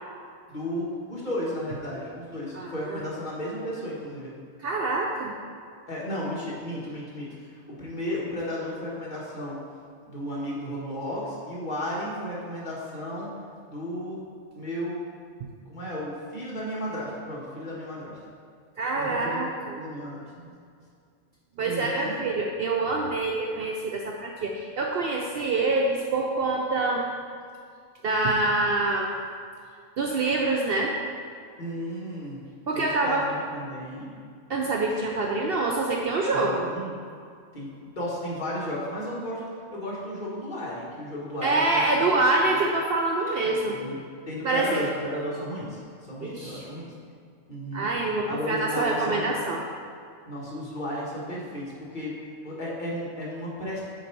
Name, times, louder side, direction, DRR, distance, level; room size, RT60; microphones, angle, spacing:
voice 1, 0.5-4.3 5.9-9.6 10.1-13.3 13.6-14.2 14.5-15.0 15.7-18.1 18.9-19.5 19.8-20.2 21.6-22.2 31.6-32.4 32.7-34.1 36.3-36.9 37.5-37.7 37.9-39.4 39.7-42.2 43.7-44.0 44.3-46.9 47.5-47.9 48.3-49.3 50.2-52.1 52.4-53.8, equal, 40° left, -5 dB, 1.5 m, -34 dB
voice 2, 2.5-3.0 4.6-5.4 15.4-15.5 18.8-19.8 21.6-27.1 28.0-29.1 30.0-30.9 32.7-33.3 34.5-36.7 41.4-43.8 44.4-44.9 46.2-46.7 47.7-49.6, right 2 dB, 60° right, 0 dB, 0.6 m, -26 dB
6.3 x 4.7 x 4.5 m, 2.3 s
omnidirectional pair, 1.3 m